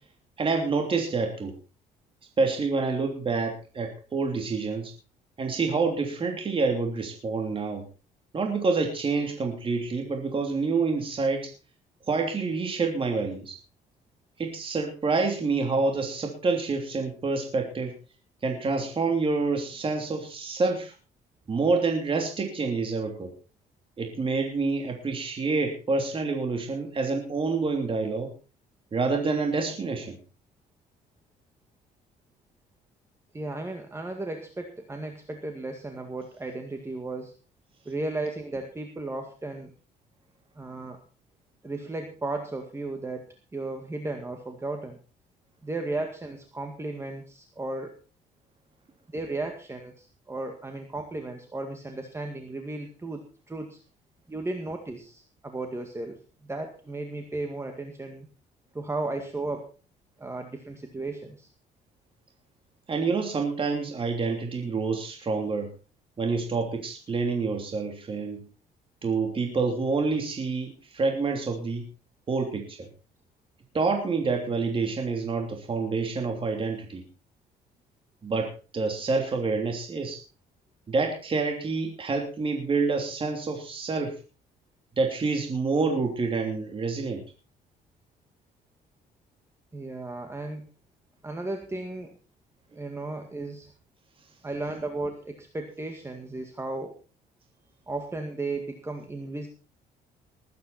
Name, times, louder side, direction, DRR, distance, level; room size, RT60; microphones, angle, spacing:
voice 1, 0.4-1.5 2.4-4.9 5.4-7.8 8.3-11.5 12.1-13.6 14.4-17.9 18.4-20.9 21.5-23.3 24.0-28.3 28.9-30.2 62.9-65.7 66.2-68.4 69.0-71.8 72.3-72.9 73.7-77.0 78.2-80.2 80.9-84.2 85.0-87.2, right 4 dB, 30° right, 3 dB, 3.2 m, -27 dB
voice 2, 33.3-37.3 37.9-39.7 40.6-41.0 41.6-45.0 45.6-48.0 49.1-53.8 54.3-58.3 58.7-59.7 60.2-61.5 89.7-90.7 91.2-92.1 92.7-93.7 94.4-97.0 97.9-99.5, right 2 dB, 15° right, 4 dB, 2.0 m, -35 dB
20.0 x 9.3 x 4.3 m, 0.34 s
cardioid pair, 110°, 17 cm